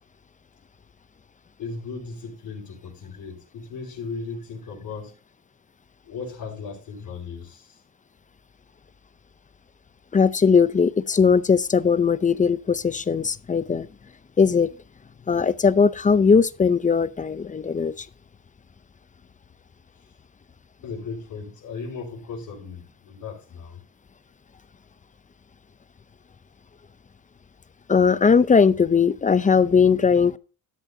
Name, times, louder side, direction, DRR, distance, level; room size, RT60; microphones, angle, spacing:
voice 1, 1.6-5.1 6.0-7.8 20.8-23.8, left 4 dB, 65° left, 4.4 m, -36 dB
voice 2, 10.1-13.9 14.4-14.7 15.3-18.1 27.9-30.4, left 5 dB, 20° left, 0.5 m, -19 dB
13.0 x 10.5 x 2.7 m
cardioid pair, 105°, 35 cm